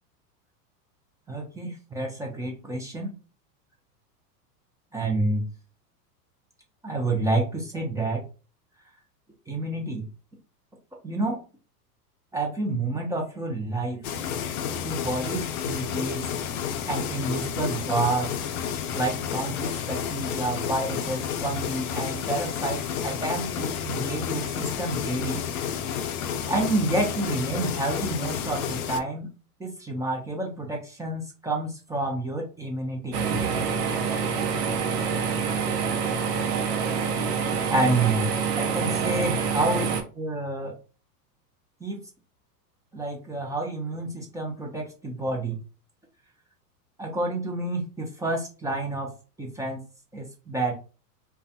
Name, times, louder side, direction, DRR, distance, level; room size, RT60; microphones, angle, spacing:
voice 1, 1.3-3.1 4.9-5.4 6.8-8.2 9.5-10.0 11.0-11.4 12.3-14.0 14.8-16.2 16.9-18.3 18.9-25.4 26.5-29.3 29.6-33.2 37.7-38.3 38.6-40.7 41.8-42.0 42.9-45.6 47.0-49.1 49.4-49.8 50.1-50.7, right 2 dB, 5° right, -1 dB, 0.5 m, -29 dB
sound 1, 14.0-29.0, left 8 dB, 65° left, 0.6 m, -31 dB
sound 2, 33.1-40.0, right 6 dB, 75° right, 0.9 m, -26 dB
3.2 x 2.3 x 2.6 m, 0.35 s
hypercardioid pair, 105°, 48 cm